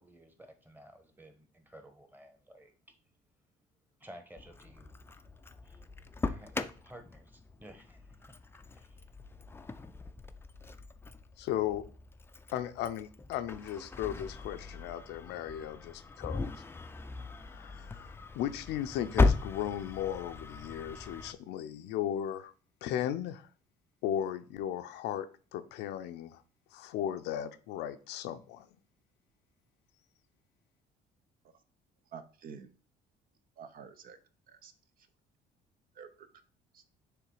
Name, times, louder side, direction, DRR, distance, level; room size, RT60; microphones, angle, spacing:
voice 1, 0.0-3.0 4.0-4.9 5.6-5.9 6.2-6.6 6.8-8.4 8.8-9.0, right 1 dB, 10° right, 7 dB, 1.1 m, -54 dB
Engine starting, 4.4-21.3, left 3 dB, 15° left, 0.4 m, -37 dB
voice 2, 11.4-11.8 12.5-16.5 17.4-22.5 22.8-23.5 24.0-26.4 26.7-28.7, left 10 dB, 85° left, 10 dB, 0.6 m, -36 dB
voice 3, 32.1-32.8 33.6-34.2 34.5-34.7 35.0-35.1 35.9-36.3 36.7-36.8, right 7 dB, 60° right, 10 dB, 0.8 m, -49 dB
6.9 x 3.3 x 4.8 m, 0.39 s
cardioid pair, 110°, 17 cm